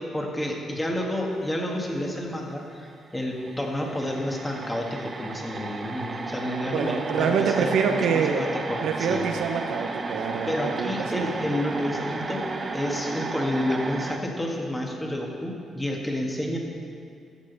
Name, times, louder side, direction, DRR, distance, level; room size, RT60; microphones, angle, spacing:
voice 1, 0.0-9.3 10.4-12.5 12.7-16.6, left 1 dB, 15° left, 0 dB, 1.7 m, -30 dB
sound 1, 2.9-3.0 3.2-14.2, right 3 dB, 35° right, 0.7 m, -34 dB
voice 2, 6.7-8.4 8.8-11.3, right 6 dB, 80° right, 4 dB, 0.8 m, -26 dB
13.0 x 7.5 x 4.0 m, 2.3 s
cardioid pair, 90°, 0 cm